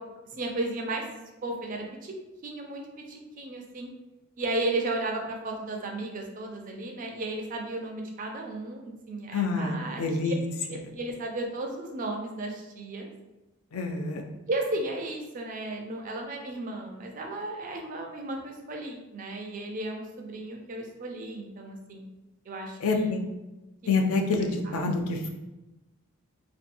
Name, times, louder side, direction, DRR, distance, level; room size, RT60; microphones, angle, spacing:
voice 1, 0.3-1.0 1.4-2.1 2.4-2.8 3.1-3.9 4.4-10.3 10.7-13.1 14.5-22.0 22.5-23.1 23.8-23.9 24.7-24.8, right 2 dB, 40° right, 2 dB, 0.4 m, -34 dB
voice 2, 9.3-10.4 13.7-14.2 22.8-23.2 23.9-25.3, left 3 dB, 80° left, 3 dB, 0.4 m, -27 dB
2.6 x 2.2 x 2.6 m, 1.0 s
head